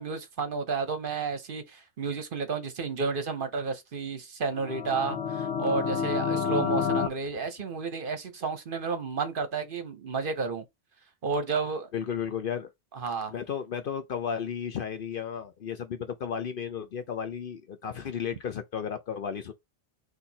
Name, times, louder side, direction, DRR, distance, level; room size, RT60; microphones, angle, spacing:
voice 1, 0.0-10.6 11.2-11.9 12.9-13.3, right 4 dB, 50° right, 0.9 m, -31 dB
sound 1, 4.5-7.1, left 6 dB, 90° left, 1.0 m, -29 dB
voice 2, 11.9-12.7 13.3-19.5, left 7 dB, 55° left, 0.7 m, -34 dB
4.4 x 2.6 x 3.9 m
omnidirectional pair, 1.2 m